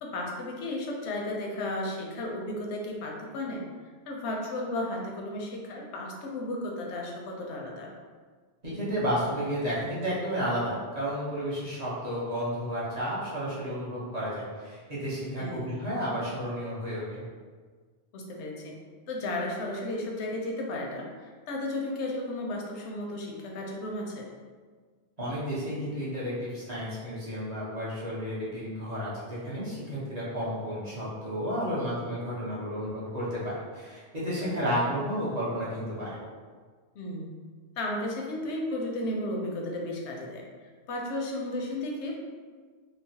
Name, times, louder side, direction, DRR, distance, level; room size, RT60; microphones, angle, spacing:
voice 1, 0.0-3.6 4.1-7.9 15.4-15.7 18.1-18.8 19.1-24.3 34.3-34.6 36.9-37.3 37.8-40.4 40.9-42.2, left 1 dB, 85° left, 0 dB, 0.9 m, -34 dB
voice 2, 8.6-17.2 25.2-36.1, equal, 40° right, -10 dB, 0.9 m, -32 dB
3.0 x 2.0 x 2.7 m, 1.5 s
omnidirectional pair, 1.1 m